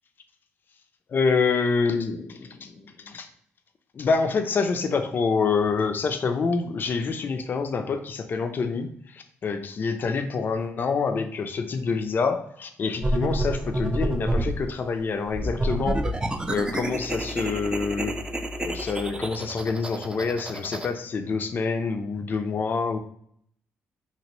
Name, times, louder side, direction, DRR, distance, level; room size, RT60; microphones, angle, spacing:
voice 1, 1.1-3.3 3.9-16.1 16.5-18.1 18.6-23.0, left 4 dB, 45° left, 8 dB, 0.4 m, -27 dB
sound 1, 13.0-14.6 15.3-20.9, right 1 dB, 20° right, 0.4 m, -28 dB
2.9 x 2.5 x 3.0 m, 0.67 s
cardioid pair, 70°, 5 cm